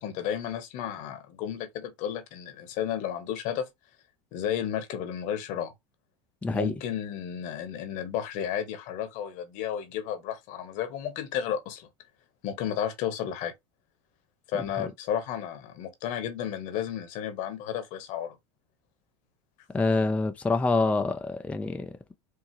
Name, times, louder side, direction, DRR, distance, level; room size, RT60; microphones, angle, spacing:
voice 1, 0.0-3.7 4.3-5.7 6.5-11.9 12.4-13.5 14.5-18.4, left 9 dB, 55° left, 1.1 m, -32 dB
voice 2, 6.4-6.7 14.8-14.9 19.7-21.9, left 3 dB, 10° left, 0.5 m, -26 dB
4.7 x 2.7 x 3.0 m
hypercardioid pair, 95°, 16 cm